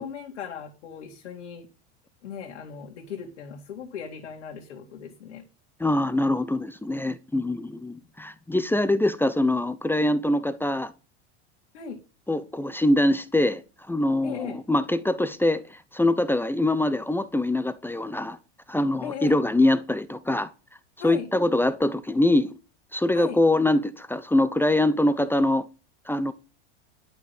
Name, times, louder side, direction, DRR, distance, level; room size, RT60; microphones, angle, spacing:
voice 1, 0.0-1.7 2.2-5.4 11.7-12.0 14.2-14.6 19.0-19.4 21.0-21.3 23.1-23.4, left 7 dB, 85° left, 2.4 m, -37 dB
voice 2, 5.8-10.9 12.3-13.6 13.9-18.4 18.7-20.5 21.0-22.5 22.9-25.7 26.1-26.3, left 1 dB, 5° left, 0.8 m, -23 dB
11.5 x 6.1 x 7.2 m
hypercardioid pair, 100°, 34 cm